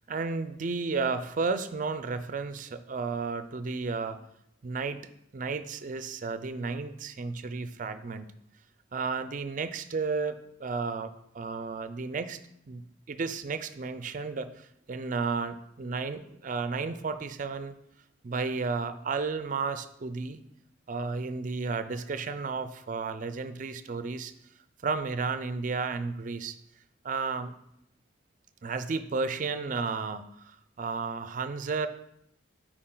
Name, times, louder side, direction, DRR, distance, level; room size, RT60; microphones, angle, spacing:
voice 1, 0.1-4.2 4.6-5.0 5.3-8.3 8.9-12.4 12.7-17.7 18.2-20.4 20.9-24.3 24.8-26.6 27.0-27.5 28.6-31.9, right 4 dB, 45° right, 11 dB, 0.4 m, -33 dB
8.7 x 4.4 x 3.9 m, 0.77 s
head